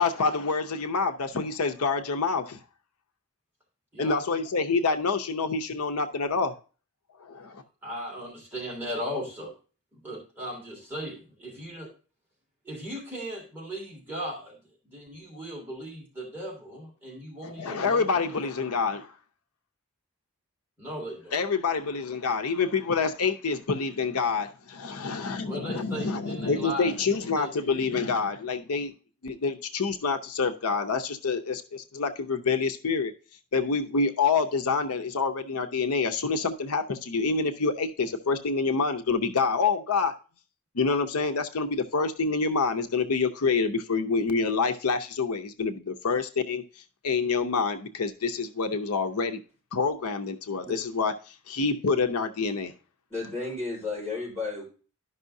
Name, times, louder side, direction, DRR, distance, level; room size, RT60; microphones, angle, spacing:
voice 1, 0.0-2.6 4.0-6.5 7.2-7.6 17.4-19.1 21.3-28.9 29.2-33.1 33.5-40.1 40.7-46.6 47.0-49.4 49.7-52.7, left 4 dB, 90° left, 6 dB, 0.7 m, -27 dB
voice 2, 3.9-4.4 7.8-9.5 9.9-11.9 12.6-14.6 14.8-18.4 20.8-21.3 25.4-27.5, equal, 10° right, -4 dB, 2.7 m, -37 dB
voice 3, 53.1-54.6, left 3 dB, 10° left, -6 dB, 4.8 m, -33 dB
12.0 x 5.5 x 2.6 m, 0.36 s
head